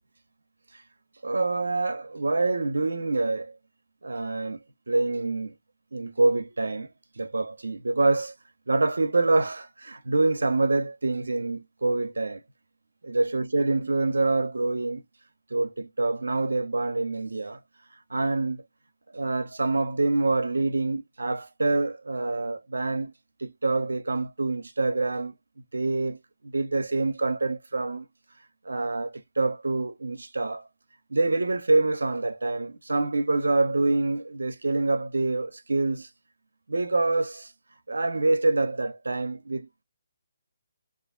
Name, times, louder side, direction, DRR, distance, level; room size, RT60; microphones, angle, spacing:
voice 1, 1.2-3.5 4.0-4.6 4.9-5.5 5.9-6.9 7.2-8.3 8.7-12.4 13.0-15.0 15.5-17.6 18.1-18.6 19.1-23.1 23.4-25.3 25.7-26.2 26.4-28.1 28.6-30.6 31.1-36.1 36.7-37.5 37.9-39.8, right 2 dB, 85° right, 0.7 m, -26 dB
3.3 x 2.5 x 3.7 m
hypercardioid pair, 150°, 0 cm